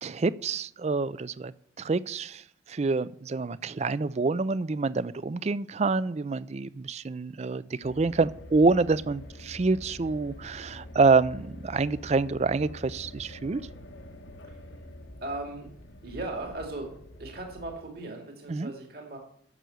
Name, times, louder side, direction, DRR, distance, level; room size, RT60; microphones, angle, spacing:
voice 1, 0.0-1.5 1.8-13.6 18.5-18.7, right 3 dB, 35° right, 18 dB, 0.4 m, -27 dB
sound 1, 7.8-17.8, left 1 dB, 85° left, 1.3 m, -45 dB
voice 2, 15.2-15.7 16.0-16.9 17.2-19.2, right 2 dB, 55° right, 2 dB, 2.4 m, -37 dB
11.0 x 6.8 x 7.8 m, 0.63 s
head